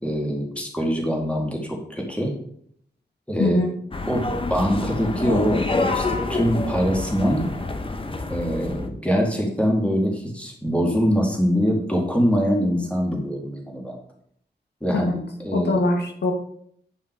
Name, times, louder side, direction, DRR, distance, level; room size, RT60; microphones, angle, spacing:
voice 1, 0.0-2.3 3.3-3.6 4.1-7.5 8.3-14.0 14.8-15.8, equal, 5° left, -1 dB, 2.4 m, -23 dB
voice 2, 3.4-3.7 14.9-15.2 15.5-16.3, left 2 dB, 70° left, 2 dB, 1.3 m, -22 dB
sound 1, 3.9-8.9, left 3 dB, 30° left, 0.9 m, -27 dB
9.6 x 5.6 x 4.7 m, 0.66 s
wide cardioid pair, 90°, 18 cm